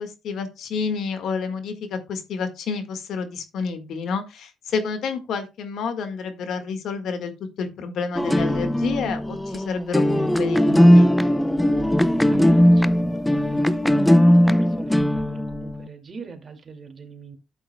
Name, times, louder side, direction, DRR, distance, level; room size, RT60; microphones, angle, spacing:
voice 1, 0.0-7.3 7.6-11.1, left 5 dB, 75° left, 1.7 m, -29 dB
sound 1, 8.1-15.9, equal, 5° left, 0.5 m, -18 dB
voice 2, 11.8-17.4, right 5 dB, 40° right, 2.2 m, -41 dB
12.0 x 8.1 x 2.2 m
cardioid pair, 90°, 0 cm